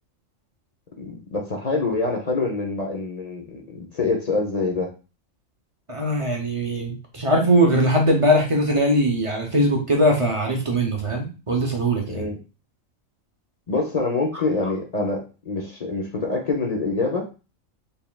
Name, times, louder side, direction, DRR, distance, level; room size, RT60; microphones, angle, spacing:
voice 1, 1.0-4.9 12.1-12.4 13.7-17.3, left 3 dB, 40° left, 0 dB, 0.6 m, -25 dB
voice 2, 5.9-12.2, equal, 30° right, 0 dB, 0.7 m, -21 dB
4.2 x 3.4 x 2.2 m, 0.32 s
omnidirectional pair, 1.4 m